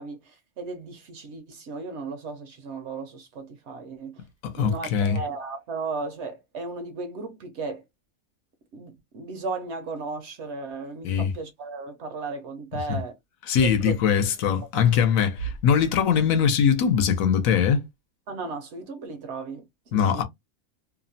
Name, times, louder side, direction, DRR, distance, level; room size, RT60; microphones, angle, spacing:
voice 1, 0.0-4.2 4.6-7.8 8.7-13.1 13.6-14.0 14.7-14.8 18.3-19.6 19.9-20.2, right 4 dB, 65° right, 0.8 m, -35 dB
voice 2, 4.4-5.2 11.0-11.3 12.9-13.0 13.5-17.8 19.9-20.2, left 7 dB, 75° left, 1.0 m, -22 dB
2.7 x 2.0 x 2.6 m
omnidirectional pair, 1.5 m